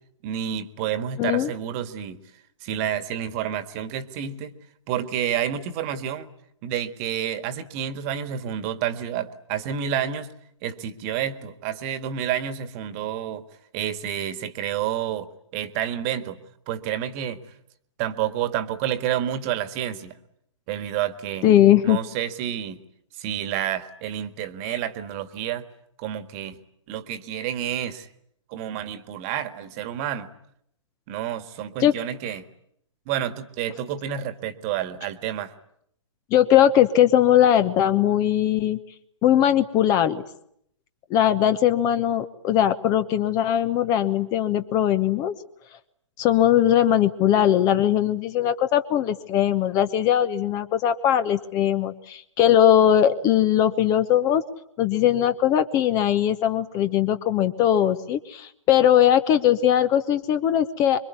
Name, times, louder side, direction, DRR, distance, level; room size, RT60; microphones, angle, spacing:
voice 1, 0.2-2.2 2.6-4.5 4.9-6.3 6.6-10.3 10.6-13.4 13.7-16.4 16.7-17.4 18.0-20.1 20.7-21.5 21.8-22.8 23.2-25.6 26.0-26.6 26.9-28.1 28.5-30.3 31.1-32.5 33.1-35.5, right 10 dB, 30° right, 11 dB, 1.8 m, -29 dB
voice 2, 1.2-1.5 21.4-22.0 31.8-31.9 36.3-38.8 39.2-40.2 41.1-45.3 46.2-54.4 54.8-61.0, left 10 dB, 20° left, 12 dB, 1.0 m, -20 dB
25.5 x 24.0 x 9.6 m, 0.73 s
figure-of-eight pair, 120°, 16 cm